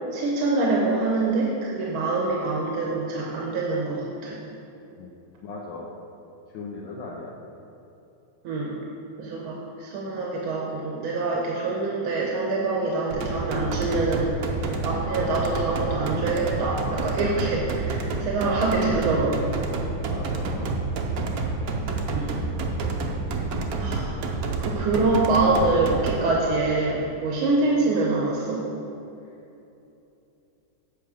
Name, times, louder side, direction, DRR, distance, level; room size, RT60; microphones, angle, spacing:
voice 1, 0.1-4.4 8.4-8.8 9.2-14.3 14.8-19.6 22.0-22.4 23.8-24.2 24.6-28.7, right 3 dB, 85° right, -3 dB, 1.7 m, -25 dB
voice 2, 5.4-5.9 6.5-7.3 20.1-20.7, left 3 dB, 75° left, -3 dB, 1.5 m, -37 dB
sound 1, 13.1-26.2, right 3 dB, 65° right, 1.0 m, -29 dB
8.3 x 5.8 x 4.9 m, 2.8 s
omnidirectional pair, 2.3 m